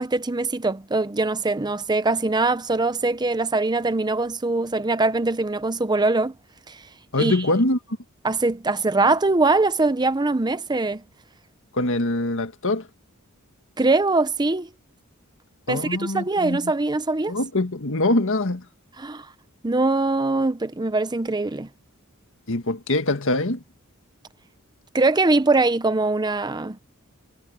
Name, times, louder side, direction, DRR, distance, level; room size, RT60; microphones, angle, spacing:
voice 1, 0.0-6.3 6.7-6.8 7.2-7.4 8.2-11.0 13.8-14.7 15.7-17.3 19.0-19.3 19.6-21.7 24.9-26.8, right 3 dB, 20° right, 0.7 m, -22 dB
voice 2, 7.1-7.8 11.7-12.9 15.7-16.7 17.3-18.7 22.5-23.6, left 2 dB, 60° left, 1.8 m, -23 dB
head